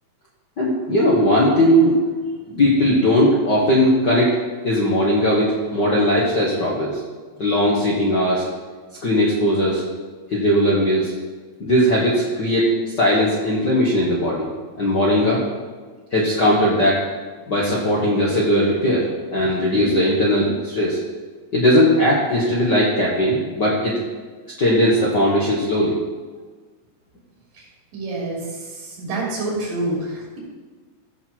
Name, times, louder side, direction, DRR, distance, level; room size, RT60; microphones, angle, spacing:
voice 1, 0.6-2.0 2.5-4.4 4.6-7.0 7.4-8.4 9.0-9.8 10.3-11.1 11.6-12.7 13.0-14.5 14.8-15.4 16.1-17.0 17.5-19.1 19.3-21.0 21.5-24.0 24.6-25.9, equal, 45° left, -5 dB, 1.4 m, -18 dB
voice 2, 27.9-30.4, right 2 dB, 65° right, -4 dB, 4.5 m, -27 dB
15.0 x 6.7 x 4.5 m, 1.4 s
omnidirectional pair, 4.1 m